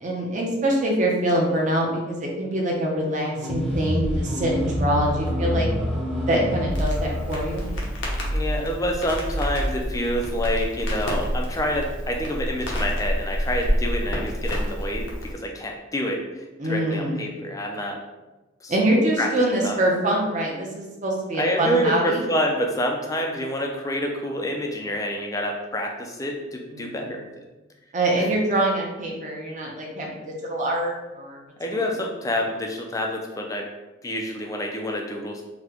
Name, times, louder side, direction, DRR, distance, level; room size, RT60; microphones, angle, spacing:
voice 1, 0.0-5.7 6.2-7.7 16.6-17.2 18.7-22.2 26.7-27.1 27.9-31.4, right 1 dB, 40° right, -2 dB, 0.7 m, -24 dB
sound 1, 3.4-10.0, equal, ahead, 0.7 m, -28 dB
Crackle, 6.7-15.3, equal, 80° left, 0.7 m, -28 dB
voice 2, 8.3-18.0 18.6-18.8 19.2-19.3 19.6-19.8 21.4-27.3 28.2-28.3 31.6-33.7 34.0-35.4, equal, 15° left, 1 dB, 0.3 m, -27 dB
4.1 x 2.1 x 2.9 m, 1.1 s
head